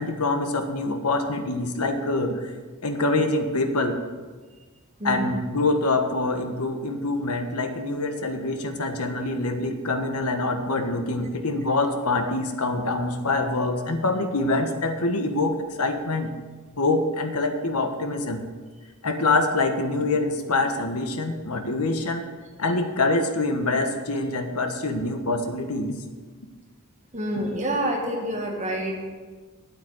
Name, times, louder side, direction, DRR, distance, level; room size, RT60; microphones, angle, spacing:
voice 1, 0.0-2.5 2.8-4.0 5.0-16.3 16.8-18.4 19.0-22.3 22.6-26.0, left 2 dB, 80° left, 6 dB, 1.3 m, -25 dB
voice 2, 27.1-29.0, right 1 dB, 30° right, 0 dB, 2.1 m, -27 dB
9.3 x 8.4 x 7.8 m, 1.4 s
head